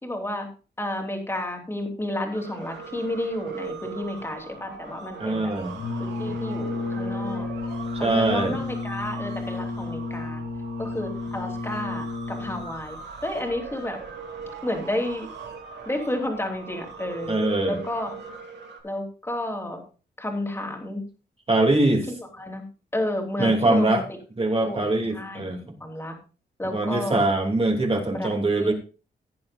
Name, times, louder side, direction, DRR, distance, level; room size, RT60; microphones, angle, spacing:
voice 1, 0.0-0.5 0.8-5.5 6.0-7.5 8.0-10.4 10.8-14.0 14.6-15.3 15.9-17.4 17.7-18.1 18.8-19.8 20.2-21.0 22.4-22.6 22.9-24.0 24.6-24.8 25.1-26.1 26.6-27.2 28.1-28.7, left 1 dB, 15° left, 2 dB, 3.1 m, -31 dB
sound 1, 2.3-18.8, right 5 dB, 90° right, 3.0 m, -40 dB
voice 2, 5.2-5.8 8.0-8.6 17.3-17.8 21.5-22.1 23.4-24.0 24.4-25.6 26.6-28.7, right 2 dB, 35° right, 2 dB, 2.9 m, -23 dB
Brass instrument, 5.7-12.9, left 3 dB, 75° left, 3.4 m, -32 dB
16.0 x 9.9 x 2.6 m, 0.34 s
wide cardioid pair, 120°, 18 cm